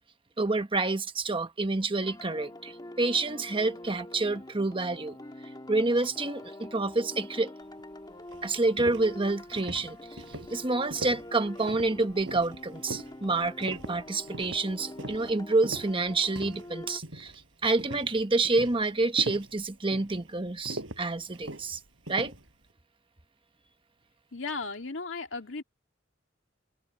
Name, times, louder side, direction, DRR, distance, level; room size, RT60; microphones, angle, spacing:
voice 1, 0.4-5.2 5.7-7.5 8.4-10.2 10.5-17.3 17.6-21.8 22.1-22.3, right 3 dB, 25° right, 1.3 m, -28 dB
sound 1, 2.0-17.0, left 1 dB, 20° left, 1.8 m, -45 dB
Walking On A Wooden Floor, 7.8-7.9 8.3-16.7 17.0-17.4 17.8-22.5, right 1 dB, 80° right, 7.6 m, -41 dB
voice 2, 24.3-25.6, left 4 dB, 75° left, 2.5 m, -35 dB
head